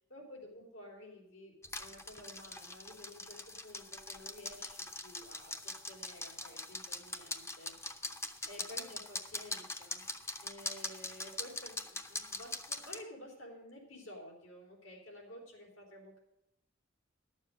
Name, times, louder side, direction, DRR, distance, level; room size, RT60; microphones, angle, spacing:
voice 1, 0.1-8.1 8.5-10.0 10.4-16.2, left 1 dB, 80° left, -1 dB, 3.6 m, -52 dB
sound 1, 1.6-13.0, left 2 dB, 15° left, 0.7 m, -42 dB
12.0 x 7.3 x 6.2 m, 0.87 s
head